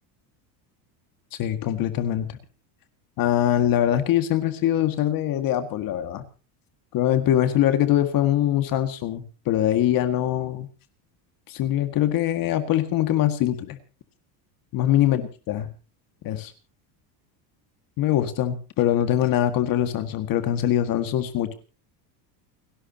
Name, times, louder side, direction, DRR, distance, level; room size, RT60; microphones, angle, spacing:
voice 1, 1.3-2.4 3.2-6.2 6.9-10.7 11.5-13.8 14.7-15.7 16.2-16.5 18.0-21.5, left 11 dB, 45° left, 9 dB, 1.9 m, -23 dB
29.5 x 12.0 x 2.8 m, 0.35 s
cardioid pair, 155°, 49 cm